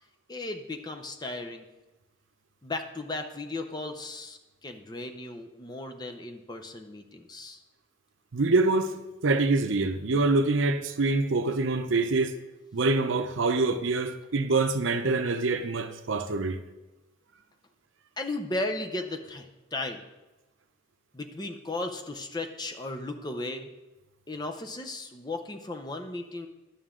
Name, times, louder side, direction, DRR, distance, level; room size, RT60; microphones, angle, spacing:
voice 1, 0.3-1.6 2.6-7.6 18.2-20.0 21.1-23.7 24.3-26.5, left 2 dB, 20° left, 0.6 m, -36 dB
voice 2, 8.3-8.9 9.2-12.4 12.7-16.6, right 3 dB, 80° right, 0.7 m, -25 dB
11.0 x 7.0 x 3.7 m
head